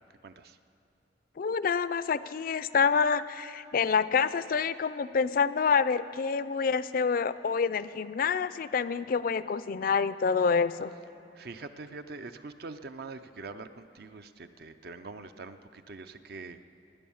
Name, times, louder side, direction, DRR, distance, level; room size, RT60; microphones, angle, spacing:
voice 1, 0.2-0.6 11.4-16.6, right 3 dB, 60° right, 10 dB, 0.6 m, -44 dB
voice 2, 1.4-10.9, left 5 dB, 50° left, 15 dB, 0.4 m, -27 dB
18.0 x 9.4 x 7.1 m, 2.6 s
head